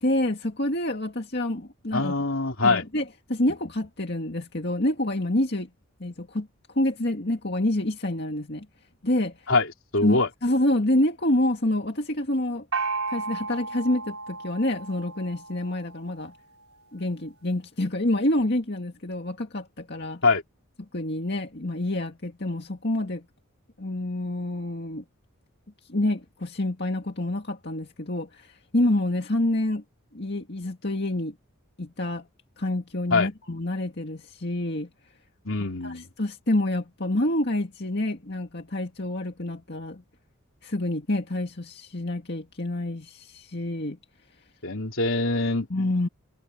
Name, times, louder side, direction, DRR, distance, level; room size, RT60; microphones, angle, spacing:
voice 1, 0.0-2.3 2.6-5.7 6.0-6.5 6.7-8.7 9.0-9.4 10.0-12.7 13.1-16.3 16.9-20.2 20.8-23.2 23.8-25.0 25.9-29.8 30.1-31.4 31.8-32.3 32.6-34.9 35.8-40.0 40.6-44.0 45.7-46.1, left 1 dB, 50° left, 2.1 m, -27 dB
voice 2, 1.9-2.8 9.5-9.7 9.9-10.3 20.2-20.4 33.1-33.3 35.4-36.0 44.6-45.7, left 3 dB, 65° left, 3.2 m, -23 dB
Gong, 12.7-16.2, right 4 dB, 85° right, 4.4 m, -33 dB
head